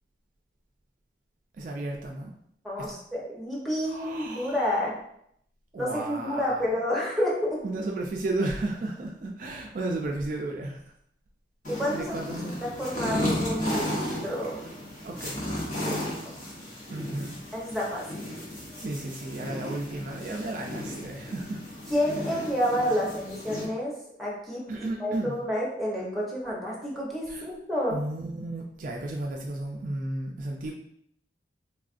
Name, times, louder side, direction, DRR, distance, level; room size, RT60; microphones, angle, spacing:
voice 1, 1.5-2.3 2.8-3.0 3.8-4.9 5.7-6.7 7.6-10.8 11.9-12.6 15.0-15.5 16.9-17.4 18.7-21.6 24.7-25.4 27.3-27.5 27.9-30.7, right 2 dB, 45° right, 1 dB, 0.3 m, -33 dB
voice 2, 2.6-5.0 5.8-7.6 11.7-12.1 12.6-14.6 15.9-16.5 17.5-18.1 21.9-23.9 24.2-28.0, equal, ahead, -5 dB, 0.7 m, -29 dB
sound 1, 11.6-23.6, left 1 dB, 45° left, 0.8 m, -34 dB
3.5 x 2.4 x 2.4 m, 0.71 s
head